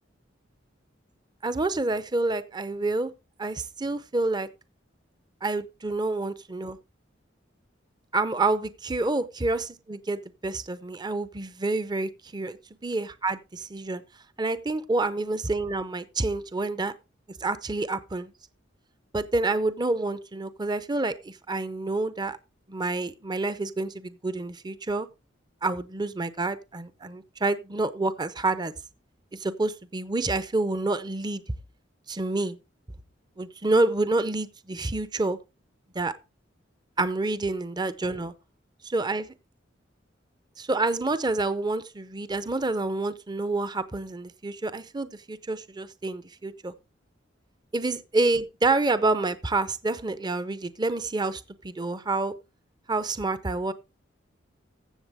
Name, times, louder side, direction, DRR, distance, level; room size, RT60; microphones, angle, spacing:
voice 1, 1.4-3.1 3.4-4.5 5.4-6.8 8.1-12.6 12.8-14.0 14.4-16.9 17.4-18.3 19.1-22.4 22.7-25.1 25.6-28.7 29.3-31.4 32.1-32.6 33.4-35.4 35.9-36.1 37.0-38.3 38.8-39.2 40.6-46.7 47.7-52.3 52.9-53.7, right 2 dB, 25° right, 0.6 m, -28 dB
15.5 x 6.9 x 3.5 m
head